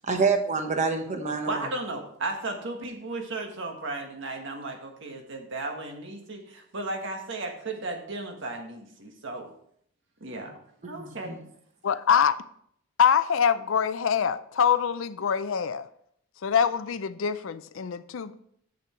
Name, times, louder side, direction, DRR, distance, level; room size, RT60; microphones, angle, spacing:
voice 1, 0.0-1.6 10.8-11.4, right 4 dB, 35° right, 5 dB, 1.1 m, -27 dB
voice 2, 1.4-9.5 10.2-10.6 10.9-11.4, right 2 dB, 60° right, 3 dB, 1.5 m, -35 dB
voice 3, 11.8-12.4 13.0-15.9 16.4-18.4, left 7 dB, 65° left, 14 dB, 0.5 m, -24 dB
7.9 x 6.7 x 4.5 m, 0.66 s
head